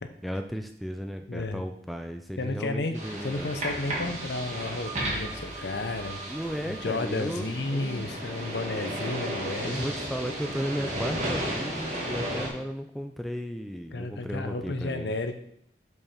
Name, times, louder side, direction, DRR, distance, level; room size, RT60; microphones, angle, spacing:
voice 1, 0.2-3.5 6.3-8.1 9.7-15.1, equal, ahead, 5 dB, 0.3 m, -35 dB
voice 2, 1.3-1.6 2.4-2.9 3.2-6.2 6.6-9.9 13.9-15.3, left 2 dB, 75° left, 8 dB, 0.7 m, -32 dB
sound 1, 2.9-12.5, right 1 dB, 40° right, 1.5 m, -34 dB
5.4 x 4.7 x 5.7 m, 0.71 s
head